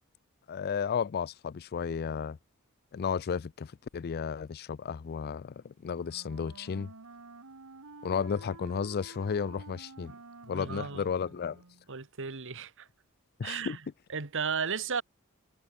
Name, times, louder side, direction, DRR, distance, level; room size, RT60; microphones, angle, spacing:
voice 1, 0.5-2.4 2.9-6.9 8.0-10.1 10.5-11.6 13.4-13.8, left 6 dB, 45° left, 0.4 m, -33 dB
Wind instrument woodwind instrument, 5.8-11.9, right 3 dB, 85° right, 1.4 m, -50 dB
voice 2, 10.5-11.1 11.9-12.9 13.4-13.8 14.1-15.0, right 6 dB, 60° right, 1.6 m, -34 dB
head